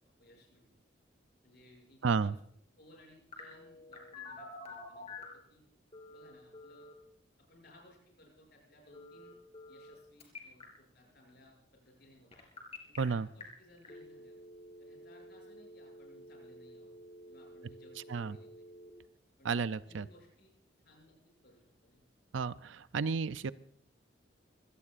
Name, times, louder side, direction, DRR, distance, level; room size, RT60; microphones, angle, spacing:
voice 1, 0.2-0.7 1.4-2.3 2.8-5.6 6.1-6.9 7.5-9.4 9.7-12.5 12.9-14.4 14.8-16.9 17.3-18.7 19.4-20.5 20.8-21.1 21.4-22.0, left 1 dB, 55° left, -1 dB, 7.5 m, -61 dB
voice 2, 2.0-2.3 13.0-13.3 18.1-18.4 19.4-20.1 22.3-23.5, right 5 dB, 75° right, 15 dB, 0.5 m, -32 dB
Telephone, 3.3-5.4 5.9-6.9 8.9-9.9 10.2-10.6 12.3-13.0 13.4-13.5 13.8-18.9, left 2 dB, 30° left, 3.5 m, -50 dB
24.5 x 17.0 x 2.5 m, 0.71 s
head